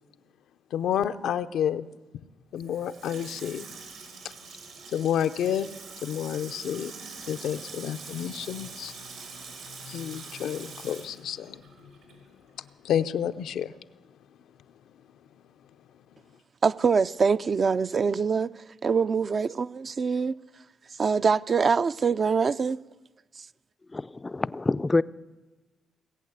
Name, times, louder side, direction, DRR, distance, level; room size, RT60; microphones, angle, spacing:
voice 1, 0.7-1.9 2.5-3.7 4.9-6.9 7.3-8.9 9.8-11.6 12.8-13.7, left 9 dB, 80° left, 0.6 m, -29 dB
Water tap faucet / Sink (filling or washing), 2.6-12.3 12.6-12.7, right 5 dB, 80° right, 3.5 m, -44 dB
voice 2, 16.6-20.3 21.0-22.8 23.4-23.5, right 5 dB, 45° right, 0.4 m, -24 dB
voice 3, 23.9-25.0, left 2 dB, 20° left, 0.4 m, -26 dB
18.5 x 8.4 x 8.0 m
cardioid pair, 85°, 0 cm